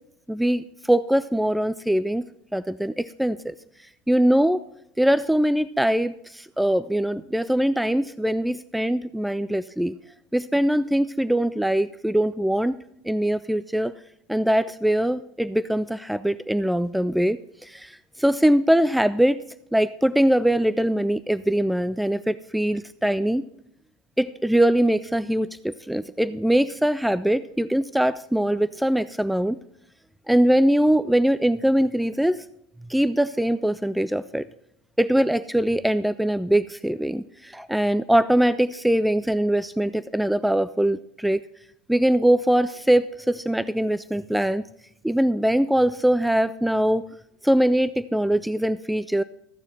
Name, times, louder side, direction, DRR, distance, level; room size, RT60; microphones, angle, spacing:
voice 1, 0.3-2.2 2.5-3.5 4.1-4.6 5.0-10.0 10.3-12.8 13.1-13.9 14.3-19.4 19.7-23.5 24.2-29.6 30.3-32.4 32.9-34.4 35.0-41.4 41.9-44.7 45.0-47.1 47.4-49.2, right 1 dB, ahead, 15 dB, 0.3 m, -22 dB
14.5 x 7.0 x 4.3 m, 0.77 s
figure-of-eight pair, 75°, 0 cm